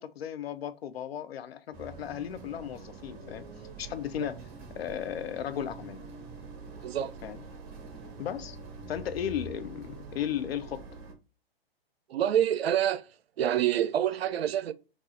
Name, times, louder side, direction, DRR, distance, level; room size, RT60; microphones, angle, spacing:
voice 1, 0.0-3.4 3.8-4.4 4.7-6.0 7.2-7.4 8.2-8.6 8.9-10.8, left 10 dB, 75° left, 0.5 m, -35 dB
sound 1, 1.7-11.1, right 3 dB, 35° right, 1.0 m, -45 dB
voice 2, 6.8-7.2 12.1-13.1 13.4-14.7, right 10 dB, 75° right, 0.5 m, -27 dB
4.0 x 2.3 x 2.6 m
hypercardioid pair, 130°, 31 cm